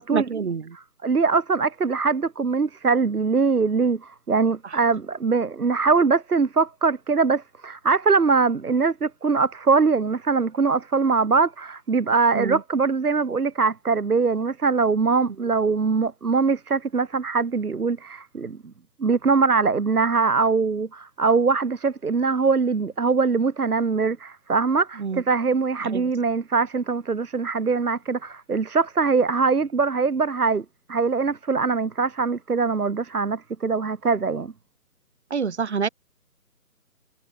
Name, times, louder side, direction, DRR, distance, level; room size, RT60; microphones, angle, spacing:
voice 1, 0.0-0.8 4.6-4.8 12.3-12.6 25.0-25.2 25.8-26.1 35.3-35.9, right 5 dB, 45° right, 1.7 m, -27 dB
voice 2, 0.7-18.6 19.0-34.5, right 4 dB, 65° right, 1.3 m, -22 dB
figure-of-eight pair, 150°, 48 cm